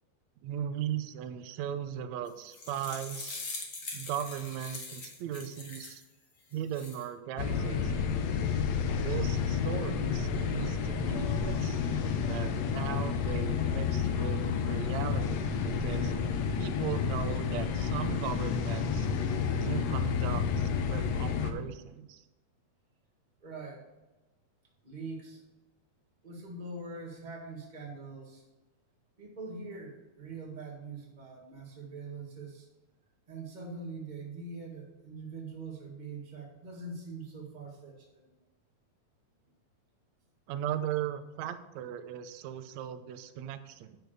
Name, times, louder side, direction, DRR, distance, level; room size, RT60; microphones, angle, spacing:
voice 1, 0.4-3.4 3.9-6.0 6.5-8.2 8.9-16.1 16.6-19.1 19.5-22.2 40.5-44.0, right 10 dB, 85° right, 9 dB, 1.6 m, -38 dB
sound 1, 2.3-6.0 6.5-7.0, left 3 dB, 45° left, 1.2 m, -42 dB
sound 2, 7.4-21.5, left 6 dB, 75° left, 1.6 m, -30 dB
voice 2, 23.4-23.9 24.8-25.4 26.2-28.4 29.2-32.7 33.3-38.1, right 3 dB, 50° right, 0 dB, 0.5 m, -43 dB
8.8 x 6.2 x 6.5 m, 1.1 s
omnidirectional pair, 4.1 m